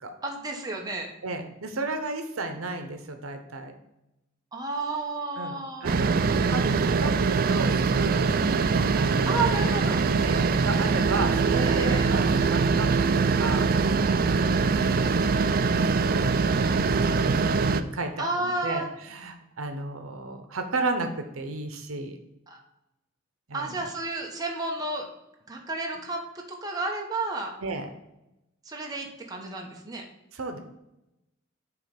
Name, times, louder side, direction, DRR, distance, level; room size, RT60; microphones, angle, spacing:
voice 1, 0.2-1.1 4.5-6.0 9.3-10.0 11.6-12.1 18.2-18.9 22.5-22.6 23.5-25.1 25.5-27.5 28.6-30.0, right 2 dB, 20° right, 0 dB, 1.0 m, -31 dB
voice 2, 1.2-3.7 5.4-8.6 8.9-9.4 10.2-14.3 14.6-16.8 17.3-22.2 23.5-23.9 27.6-27.9 30.3-30.6, right 3 dB, 85° right, 6 dB, 0.8 m, -34 dB
sound 1, 5.8-17.8, right 4 dB, 45° right, 0.3 m, -23 dB
7.0 x 3.1 x 5.2 m, 0.91 s
head